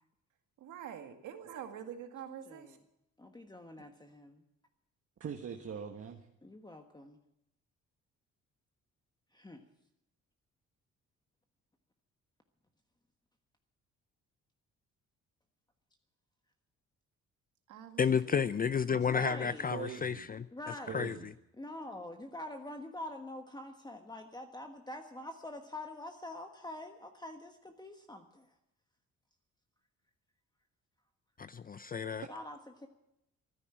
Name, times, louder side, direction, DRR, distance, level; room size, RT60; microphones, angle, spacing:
voice 1, 0.6-2.8 17.7-18.5, right 9 dB, 85° right, 6 dB, 2.0 m, -46 dB
voice 2, 2.5-2.8 3.2-4.4 6.4-7.2 9.3-9.6 18.9-19.7 20.5-21.1 21.6-28.5 32.3-32.9, left 1 dB, 15° left, 5 dB, 1.3 m, -45 dB
voice 3, 5.2-6.2 18.9-20.3 20.9-21.3, right 6 dB, 50° right, 3 dB, 1.5 m, -42 dB
voice 4, 18.0-20.5 20.9-21.3 31.4-32.2, left 6 dB, 30° left, 15 dB, 0.5 m, -31 dB
14.5 x 9.8 x 8.9 m, 0.85 s
cardioid pair, 90°, 30 cm